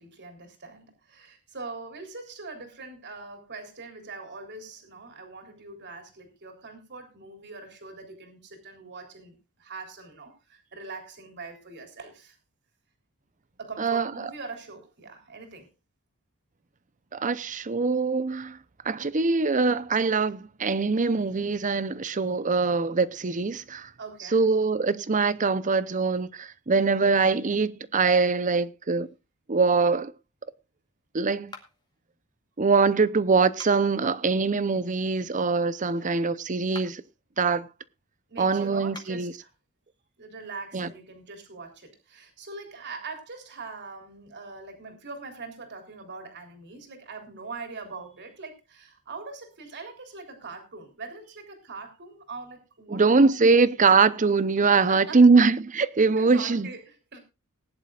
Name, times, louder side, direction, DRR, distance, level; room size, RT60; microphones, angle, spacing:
voice 1, 0.0-12.4 13.6-15.7 24.0-24.5 35.9-36.2 38.3-39.5 40.2-53.7 54.9-55.2 56.2-57.2, right 3 dB, 50° right, 3.6 m, -42 dB
voice 2, 13.8-14.3 17.1-18.6 18.8-23.9 24.3-29.1 29.5-30.1 31.1-31.5 32.6-37.0 37.4-37.7 38.4-39.3 40.7-40.9 52.9-56.7, right 4 dB, 35° right, 0.7 m, -23 dB
sound 1, 31.5-32.0 33.4-34.0 36.6-37.1 38.8-39.3, left 3 dB, 20° left, 2.2 m, -46 dB
20.0 x 11.0 x 2.4 m
head